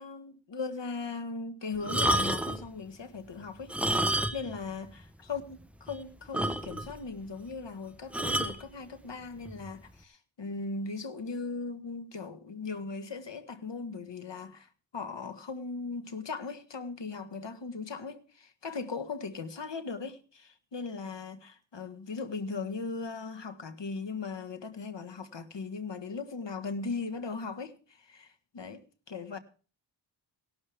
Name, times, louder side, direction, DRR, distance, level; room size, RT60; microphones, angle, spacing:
voice 1, 0.0-29.4, left 4 dB, 65° left, 1.6 m, -38 dB
sound 1, 1.8-2.7 3.6-4.6 4.9-5.0 5.5-5.6 5.9-6.0 6.3-7.0 8.1-8.6 9.5-9.7, right 1 dB, 5° right, 0.8 m, -29 dB
17.0 x 12.0 x 3.5 m
wide cardioid pair, 115°, 46 cm